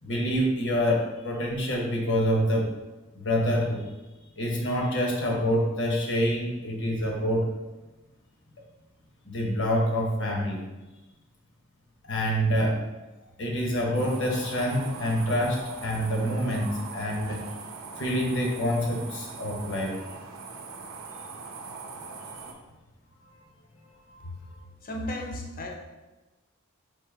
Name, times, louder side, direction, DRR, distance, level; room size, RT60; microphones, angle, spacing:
voice 1, 0.0-2.7 3.1-3.8 4.4-7.5 9.2-10.6 12.0-12.8 13.4-17.4 18.0-20.0 24.1-24.6, equal, 60° left, -1 dB, 1.0 m, -26 dB
sound 1, 13.9-22.5, right 4 dB, 80° right, 0.6 m, -41 dB
voice 2, 24.8-25.7, left 1 dB, 45° left, 1 dB, 0.7 m, -34 dB
3.8 x 2.8 x 4.7 m, 1.1 s
head